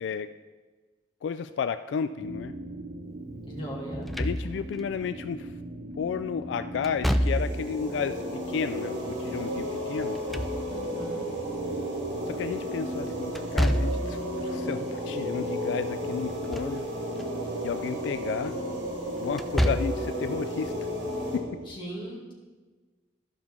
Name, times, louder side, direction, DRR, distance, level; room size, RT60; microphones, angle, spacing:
voice 1, 1.2-2.5 4.2-5.5 6.0-8.2 8.5-10.2 12.3-16.8 17.6-18.6 19.2-20.7 21.3-21.5, left 6 dB, 85° left, 11 dB, 0.3 m, -32 dB
sound 1, 2.2-21.7, equal, 60° right, 0.8 m, -39 dB
voice 2, 3.4-4.1 10.7-11.3 21.6-22.3, equal, 30° left, -4 dB, 2.2 m, -38 dB
Slam / Thump thud, 3.9-4.8 6.8-7.7 10.0-11.0 13.4-14.2 16.2-16.8 17.2-17.3 19.3-20.1, equal, ahead, 0.3 m, -27 dB
sound 2, 7.2-21.4, equal, 80° right, 2.7 m, -34 dB
13.5 x 5.9 x 3.6 m, 1.3 s
head